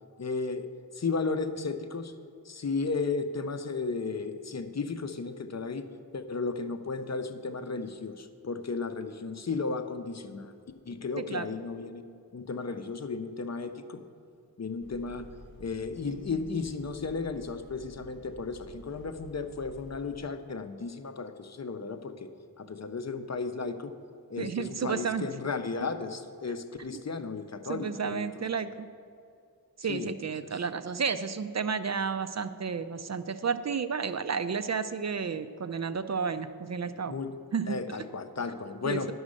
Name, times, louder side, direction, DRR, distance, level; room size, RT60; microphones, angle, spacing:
voice 1, 0.2-0.7 0.9-2.1 2.5-5.8 6.1-10.5 10.9-12.0 12.3-14.0 14.6-15.3 15.6-22.3 22.6-23.9 24.3-28.4 29.9-30.1 37.1-37.3 37.7-39.1, left 4 dB, 45° left, 9 dB, 0.6 m, -34 dB
voice 2, 11.2-11.5 24.4-25.3 26.9-27.0 27.7-28.9 29.8-37.1 37.5-37.8 38.8-39.1, right 6 dB, 50° right, 12 dB, 0.5 m, -32 dB
sound 1, 14.8-20.2, equal, 75° right, 1.7 m, -52 dB
11.0 x 6.3 x 6.4 m, 2.4 s
wide cardioid pair, 75°, 36 cm